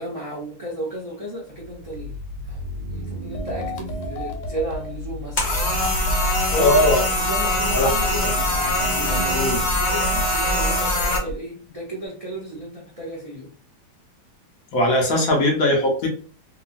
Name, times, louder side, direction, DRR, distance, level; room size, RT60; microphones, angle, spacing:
voice 1, 0.0-2.2 2.4-5.4 6.5-8.5 8.9-13.5, right 1 dB, 65° right, -5 dB, 0.3 m, -33 dB
sound 1, 1.6-10.9, left 1 dB, 85° right, 1.2 m, -34 dB
sound 2, 3.3-4.9 5.5-7.0 7.7-9.2 9.9-11.4, left 1 dB, 85° left, 1.3 m, -32 dB
sound 3, 5.4-11.2, left 1 dB, 40° left, 0.7 m, -23 dB
voice 2, 6.6-7.0 7.7-7.9 9.3-9.6 14.7-16.1, left 1 dB, 60° left, 1 dB, 1.0 m, -19 dB
3.0 x 2.3 x 2.4 m, 0.42 s
omnidirectional pair, 1.9 m